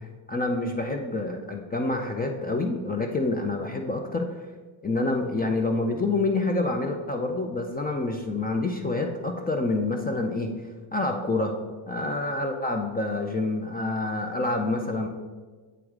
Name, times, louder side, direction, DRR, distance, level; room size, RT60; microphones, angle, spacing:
voice 1, 0.3-4.3 4.8-10.5 10.9-11.5 11.9-15.1, left 2 dB, 20° left, 4 dB, 0.5 m, -27 dB
8.0 x 4.7 x 3.6 m, 1.4 s
cardioid pair, 105°, 50 cm